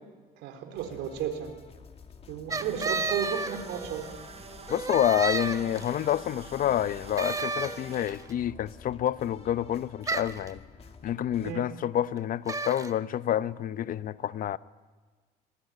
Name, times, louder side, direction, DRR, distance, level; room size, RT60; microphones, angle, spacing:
voice 1, 0.4-1.5 2.3-4.0 11.4-11.6, right 9 dB, 90° right, 4.1 m, -33 dB
sound 1, 0.7-11.5, left 5 dB, 35° left, 2.3 m, -50 dB
sound 2, 2.5-4.1 4.7-6.1 7.2-8.2 10.0-10.5 12.5-12.9, right 3 dB, 20° right, 1.4 m, -32 dB
sound 3, 2.6-8.1, right 4 dB, 35° right, 4.6 m, -47 dB
voice 2, 4.7-10.6 11.0-14.6, left 11 dB, 55° left, 0.8 m, -28 dB
27.0 x 20.5 x 9.5 m
cardioid pair, 110°, 17 cm